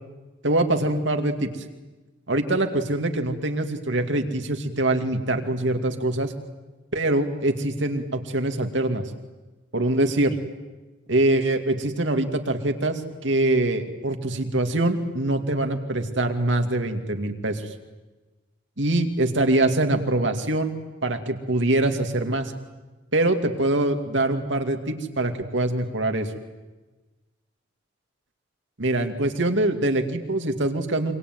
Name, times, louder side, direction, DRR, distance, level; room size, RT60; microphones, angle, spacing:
voice 1, 0.4-1.5 2.3-6.3 6.9-9.0 9.7-10.3 11.1-17.7 18.8-20.8 21.0-22.5 23.1-26.3 28.8-31.1, right 1 dB, 80° right, 5 dB, 2.5 m, -24 dB
26.5 x 24.0 x 9.4 m, 1.2 s
head